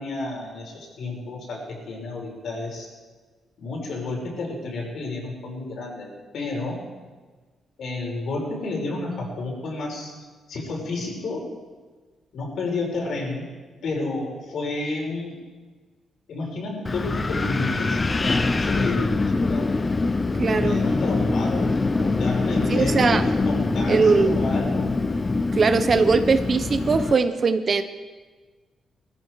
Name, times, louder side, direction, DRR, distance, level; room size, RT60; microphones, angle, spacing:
voice 1, 0.0-2.9 3.6-6.1 6.3-6.8 7.8-10.1 10.5-11.5 12.3-13.5 13.8-15.4 16.3-19.7 20.6-24.9 25.9-26.0, left 2 dB, 60° left, -2 dB, 5.4 m, -31 dB
Wind, 16.8-27.1, left 3 dB, 20° left, 0.7 m, -24 dB
voice 2, 20.4-20.8 22.7-23.2 23.9-24.4 25.5-27.8, right 4 dB, 35° right, 10 dB, 0.8 m, -20 dB
19.5 x 15.0 x 4.8 m, 1.4 s
cardioid pair, 140°, 0 cm